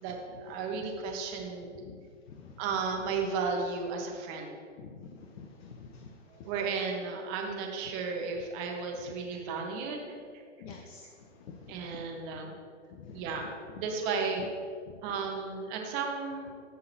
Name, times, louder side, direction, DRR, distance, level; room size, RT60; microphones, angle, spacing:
voice 1, 0.0-1.7 2.6-4.5 6.3-10.2 11.7-12.6 13.1-13.5 13.8-14.5 15.0-16.5, right 4 dB, 40° right, 2 dB, 1.5 m, -34 dB
voice 2, 4.8-5.1 5.4-6.1 6.4-6.5 10.6-11.1 11.4-11.7 13.0-13.2 14.9-15.0, left 6 dB, 55° left, 3 dB, 0.9 m, -47 dB
15.5 x 5.6 x 3.0 m, 2.1 s
figure-of-eight pair, 100°, 37 cm